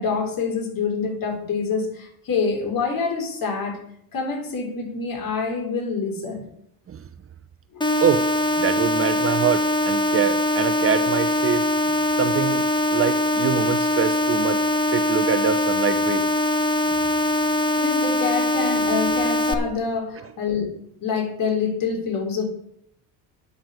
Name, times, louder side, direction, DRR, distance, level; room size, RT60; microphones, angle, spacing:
voice 1, 0.0-3.8 4.1-6.4 7.7-7.8 17.8-20.7 21.0-22.4, left 5 dB, 50° left, 2 dB, 4.1 m, -26 dB
sound 1, 7.8-19.5, left 1 dB, 10° left, 1.3 m, -22 dB
voice 2, 8.6-11.7 12.2-12.6 12.9-16.3, right 7 dB, 30° right, 11 dB, 0.8 m, -24 dB
9.5 x 6.5 x 7.7 m, 0.72 s
hypercardioid pair, 80°, 44 cm